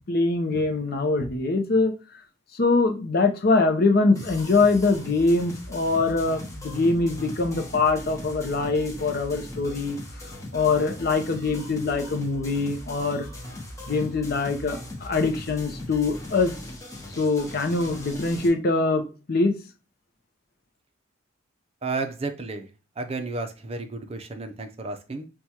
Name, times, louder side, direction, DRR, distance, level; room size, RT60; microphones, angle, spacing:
voice 1, 0.1-1.9 2.5-10.0 10.5-13.3 13.9-16.5 17.2-19.6, left 3 dB, 50° left, 0.6 m, -23 dB
sound 1, 4.2-18.5, left 1 dB, 15° left, 0.9 m, -39 dB
voice 2, 21.8-22.7 23.0-25.2, right 3 dB, 30° right, 0.5 m, -32 dB
6.0 x 2.3 x 2.8 m
head